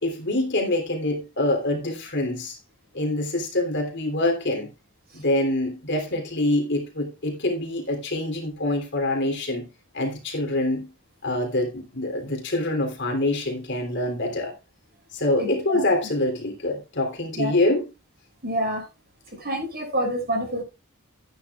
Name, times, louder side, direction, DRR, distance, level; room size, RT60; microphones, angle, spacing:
voice 1, 0.0-2.6 2.9-4.7 5.1-9.7 9.9-10.9 11.2-14.5 15.1-17.9, left 1 dB, 50° left, 3.4 m, -25 dB
voice 2, 15.4-15.8 17.4-17.5 18.4-18.8 19.3-20.6, right 1 dB, 45° right, 6.1 m, -27 dB
14.0 x 10.0 x 2.5 m
head